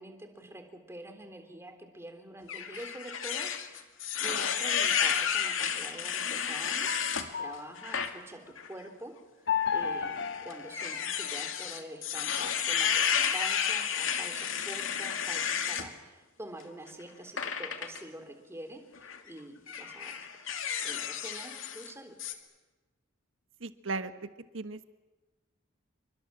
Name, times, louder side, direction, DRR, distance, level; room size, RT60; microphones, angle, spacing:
voice 1, 0.0-3.9 4.2-7.0 7.4-9.1 9.7-10.2 10.4-12.9 13.3-20.5 20.8-22.2, right 1 dB, 15° right, 5 dB, 3.6 m, -46 dB
sound 1, 2.5-7.3 7.8-8.1 8.6-8.7 9.7-15.9 17.4-18.0 19.0-19.2 19.7-21.9 22.2-22.3, left 7 dB, 85° left, 2.4 m, -31 dB
sound 2, 5.9-8.2 9.5-11.7, left 7 dB, 60° left, 1.0 m, -35 dB
voice 2, 23.6-24.1 24.5-25.0, right 3 dB, 80° right, 10 dB, 1.4 m, -36 dB
28.5 x 24.0 x 7.6 m, 1.2 s
head